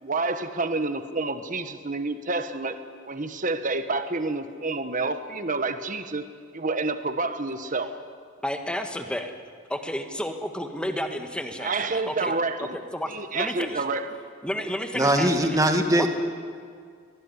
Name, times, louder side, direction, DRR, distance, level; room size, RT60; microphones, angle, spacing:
voice 1, 0.0-2.8 3.1-6.2 6.5-7.9 11.6-12.8 13.1-14.2, right 3 dB, 40° right, 9 dB, 1.3 m, -28 dB
voice 2, 8.4-9.3 9.7-12.3 12.6-12.7 12.9-13.8 14.4-15.6 16.0-16.1, equal, 5° left, 5 dB, 1.6 m, -31 dB
voice 3, 14.9-16.1, right 1 dB, 15° right, 5 dB, 1.9 m, -21 dB
24.5 x 18.5 x 9.8 m, 2.2 s
head